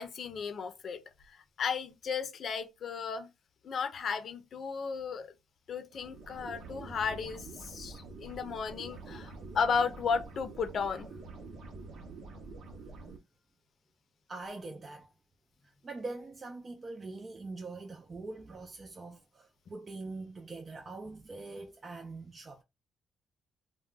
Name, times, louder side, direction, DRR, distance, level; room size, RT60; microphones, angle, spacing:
voice 1, 0.0-3.3 3.6-5.3 5.7-11.1, left 5 dB, 55° left, 0.6 m, -34 dB
sound 1, 5.9-13.2, right 3 dB, 70° right, 0.7 m, -47 dB
voice 2, 14.3-15.1 15.8-22.6, right 3 dB, 35° right, 0.5 m, -43 dB
2.3 x 2.2 x 3.7 m
cardioid pair, 90°, 0 cm